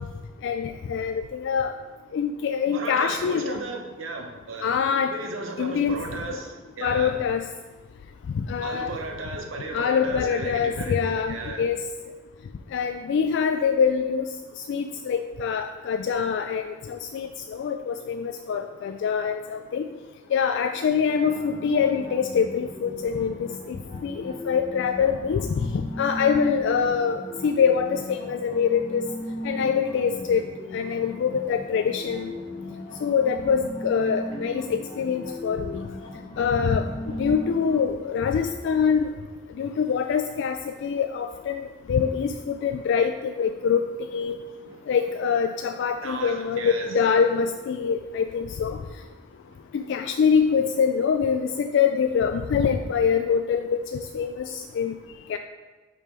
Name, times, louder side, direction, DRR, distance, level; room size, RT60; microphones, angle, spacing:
voice 1, 0.4-1.7 2.1-3.6 4.6-5.1 5.6-6.0 6.3-6.4 6.8-7.5 8.3-8.9 9.7-11.8 12.7-14.3 14.7-19.9 20.3-29.0 29.4-30.4 30.7-32.3 33.0-35.8 36.4-39.1 39.6-44.4 44.9-48.8 49.7-54.9 55.3-55.4, left 6 dB, 65° left, 6 dB, 0.3 m, -24 dB
voice 2, 2.7-4.7 5.0-7.2 8.6-10.9 11.3-11.6 44.6-44.8 46.0-46.9 49.5-49.6, right 3 dB, 75° right, 3 dB, 0.9 m, -35 dB
sound 1, 21.0-37.8, left 1 dB, 25° left, 1.4 m, -37 dB
5.3 x 5.0 x 4.4 m, 1.3 s
head